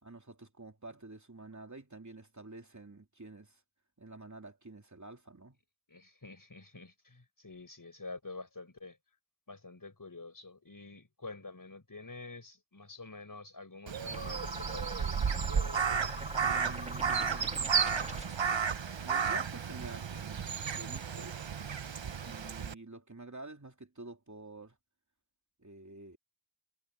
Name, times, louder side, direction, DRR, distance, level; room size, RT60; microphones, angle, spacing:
voice 1, 0.0-3.6 4.0-5.6 16.4-17.8 19.0-21.4 21.8-24.8 25.6-26.2, right 2 dB, 35° right, 3.2 m, -49 dB
voice 2, 5.9-9.0 9.5-15.2, left 3 dB, 45° left, 5.3 m, -48 dB
Crow, 13.9-22.7, right 6 dB, 70° right, 1.0 m, -33 dB
sound 1, 14.1-18.5, right 1 dB, 15° right, 2.0 m, -42 dB
wide cardioid pair, 60°, 47 cm